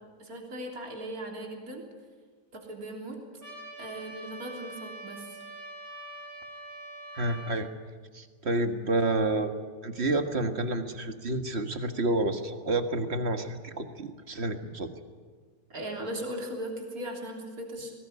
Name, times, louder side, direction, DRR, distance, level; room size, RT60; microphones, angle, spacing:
voice 1, 0.2-1.8 2.5-3.2 3.8-5.4 15.7-18.0, right 1 dB, 60° right, 1 dB, 3.9 m, -38 dB
Trumpet, 3.4-7.6, right 1 dB, 90° right, 5.4 m, -44 dB
voice 2, 7.2-7.7 8.1-9.5 9.8-14.9, right 2 dB, 40° right, 7 dB, 1.9 m, -29 dB
21.0 x 19.0 x 10.0 m, 1.5 s
omnidirectional pair, 1.7 m